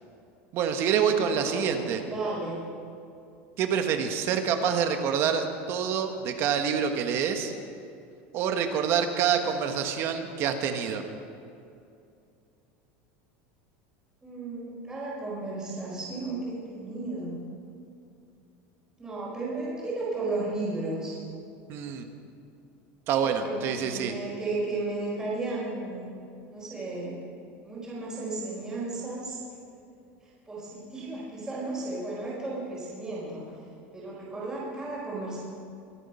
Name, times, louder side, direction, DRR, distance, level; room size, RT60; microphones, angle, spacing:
voice 1, 0.5-2.0 3.6-7.5 8.3-11.0 21.7-22.0 23.1-24.1, right 7 dB, 45° right, 6 dB, 1.5 m, -26 dB
voice 2, 1.4-1.8 2.0-2.6 14.2-17.3 19.0-21.2 23.2-26.1 26.5-27.2 27.6-29.4 30.2-33.6 33.9-35.4, right 2 dB, 10° right, -6 dB, 4.7 m, -34 dB
25.0 x 9.3 x 5.7 m, 2.5 s
supercardioid pair, 160°, 6 cm